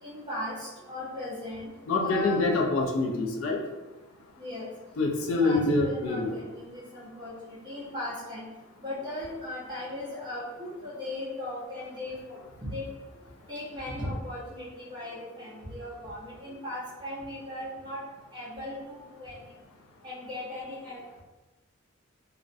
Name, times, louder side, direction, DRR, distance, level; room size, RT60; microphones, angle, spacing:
voice 1, 0.0-1.7 2.0-2.4 4.4-4.7 5.2-8.4 8.8-12.8 13.5-18.0 18.3-19.4 20.0-21.0, left 1 dB, 20° right, -8 dB, 0.8 m, -37 dB
voice 2, 1.9-3.6 5.0-6.4, left 2 dB, 70° left, 1 dB, 0.4 m, -26 dB
2.4 x 2.1 x 2.5 m, 1.1 s
head